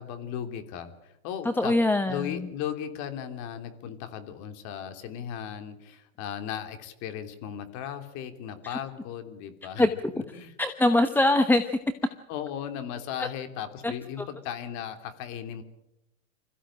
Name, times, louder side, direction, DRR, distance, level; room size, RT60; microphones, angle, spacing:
voice 1, 0.0-9.9 10.1-10.5 12.3-15.6, left 9 dB, 45° left, 8 dB, 3.2 m, -36 dB
voice 2, 1.4-2.4 8.6-8.7 9.8-9.9 10.6-11.8 13.8-13.9, left 1 dB, 5° left, 9 dB, 0.9 m, -23 dB
26.5 x 15.5 x 9.0 m, 0.86 s
hypercardioid pair, 120°, 40 cm